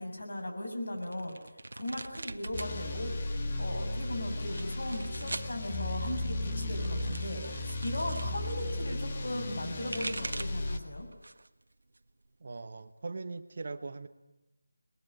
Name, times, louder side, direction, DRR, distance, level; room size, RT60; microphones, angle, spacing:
voice 1, 0.0-1.4 1.7-3.3 3.6-11.1, left 1 dB, 65° left, 4 dB, 7.5 m, -37 dB
sound 1, 1.0-2.7 3.1-3.7 4.4-5.5 6.6-8.3 9.6-10.7 11.1-11.6 11.9-12.9, right 2 dB, 80° right, 1.4 m, -42 dB
sound 2, 2.5-10.8, left 2 dB, 25° left, 1.7 m, -35 dB
voice 2, 12.4-14.1, right 3 dB, 35° right, 10 dB, 1.2 m, -40 dB
28.0 x 21.5 x 9.7 m, 1.0 s
figure-of-eight pair, 180°, 0 cm